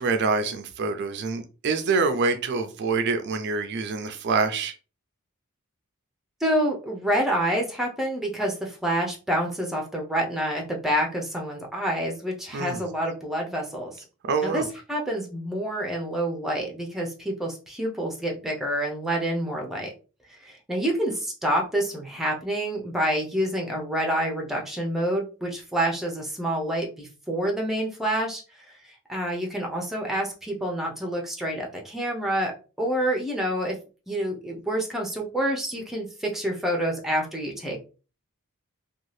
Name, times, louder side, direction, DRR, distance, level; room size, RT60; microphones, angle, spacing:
voice 1, 0.0-4.7 12.5-12.8 14.2-14.7, right 4 dB, 50° right, 8 dB, 0.4 m, -26 dB
voice 2, 6.4-14.0 14.4-19.9 20.3-28.4 29.1-32.5 32.8-33.8 34.1-37.8, right 1 dB, ahead, 0 dB, 0.5 m, -27 dB
2.7 x 2.3 x 3.1 m, 0.34 s
head